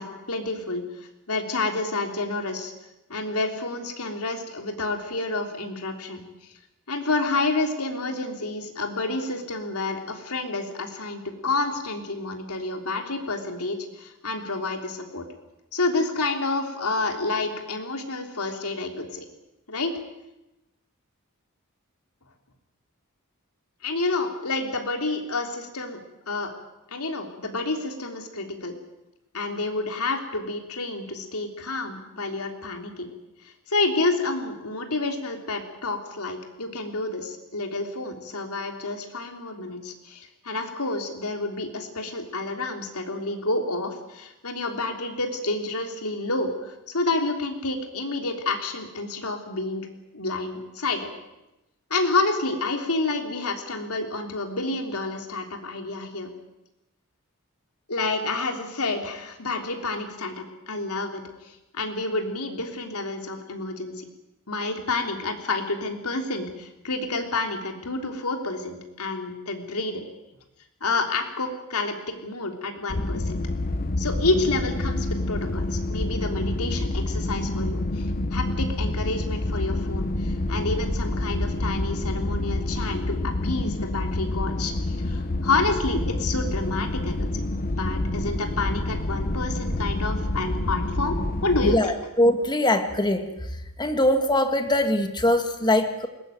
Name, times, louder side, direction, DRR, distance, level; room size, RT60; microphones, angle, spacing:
voice 1, 0.0-2.7 3.1-6.5 6.9-15.2 15.7-19.2 19.7-19.9 23.8-26.0 26.3-26.5 26.9-28.7 29.3-33.1 33.4-49.9 50.1-51.1 51.9-56.3 57.9-64.1 64.5-70.0 70.8-72.0 72.2-73.4 74.0-87.3 87.7-91.9, left 3 dB, 85° left, 4 dB, 3.4 m, -29 dB
sound 1, 72.9-91.8, left 2 dB, 40° left, 0.9 m, -28 dB
sound 2, 79.9-83.0 83.3-83.4 84.3-84.4 84.7-91.3, right 1 dB, 10° right, 0.9 m, -36 dB
voice 2, 91.6-93.3 93.8-96.1, left 1 dB, 20° left, 7 dB, 1.9 m, -22 dB
21.5 x 20.0 x 9.2 m, 0.93 s
head